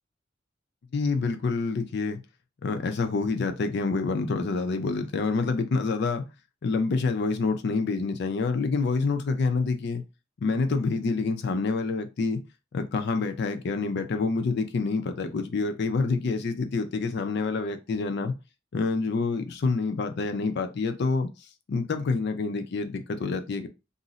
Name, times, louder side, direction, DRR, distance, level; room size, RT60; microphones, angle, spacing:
voice 1, 0.9-2.2 2.6-6.2 6.6-10.0 10.4-12.4 12.7-18.3 18.7-21.3 21.7-23.7, left 4 dB, 60° left, 0.4 m, -27 dB
2.5 x 2.0 x 3.8 m
head